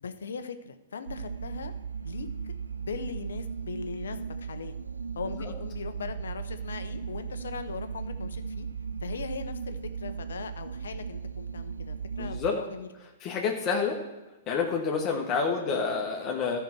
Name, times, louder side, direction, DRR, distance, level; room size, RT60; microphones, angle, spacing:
voice 1, 0.0-1.7 2.0-4.8 5.2-8.7 9.0-12.9, left 5 dB, 70° left, 10 dB, 0.9 m, -39 dB
sound 1, 1.1-12.5, right 6 dB, 85° right, 0.5 m, -37 dB
voice 2, 12.2-12.6 13.2-14.0 14.5-16.6, left 5 dB, 35° left, 0 dB, 1.5 m, -28 dB
13.0 x 5.8 x 6.2 m, 1.1 s
figure-of-eight pair, 110°, 0 cm